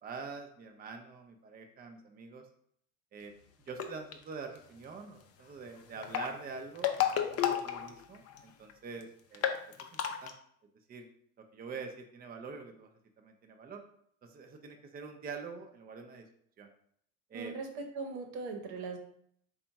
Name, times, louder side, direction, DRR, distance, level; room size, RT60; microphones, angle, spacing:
voice 1, 0.0-2.4 3.1-3.3 3.7-9.5 10.2-10.3 10.9-11.1 11.5-12.9 13.2-13.8 14.2-16.3 16.6-16.7 17.3-17.5, right 4 dB, 25° right, 4 dB, 0.5 m, -45 dB
sound 1, 3.7-4.1 5.9-8.4 8.7-8.8 9.0-9.1 9.3-10.3, left 10 dB, 40° left, 0.5 m, -32 dB
voice 2, 17.3-19.0, right 4 dB, 85° right, 3 dB, 0.9 m, -39 dB
3.4 x 2.3 x 4.0 m, 0.67 s
supercardioid pair, 100°, 40 cm